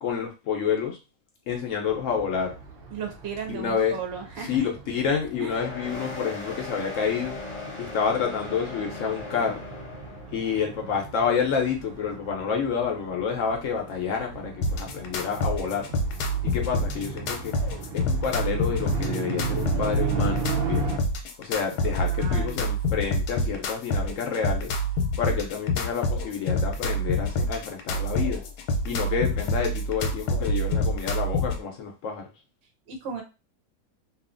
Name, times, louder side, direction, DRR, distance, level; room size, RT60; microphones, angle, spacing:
voice 1, 0.0-1.0 1.5-2.5 3.5-4.0 4.4-7.4 7.8-9.6 10.3-15.9 16.4-17.5 17.9-20.9 21.4-24.7 25.2-28.4 28.8-32.3, left 6 dB, 65° left, 2 dB, 0.8 m, -28 dB
sound 1, 1.8-21.0, right 5 dB, 90° right, 0.5 m, -37 dB
voice 2, 2.9-4.5 5.4-5.5 21.8-22.7 32.9-33.2, right 6 dB, 55° right, 3 dB, 0.7 m, -35 dB
sound 2, 5.4-10.5, left 2 dB, 25° left, 0.7 m, -38 dB
sound 3, 14.6-31.6, left 1 dB, 85° left, 1.2 m, -27 dB
2.7 x 2.4 x 2.5 m, 0.29 s
omnidirectional pair, 1.7 m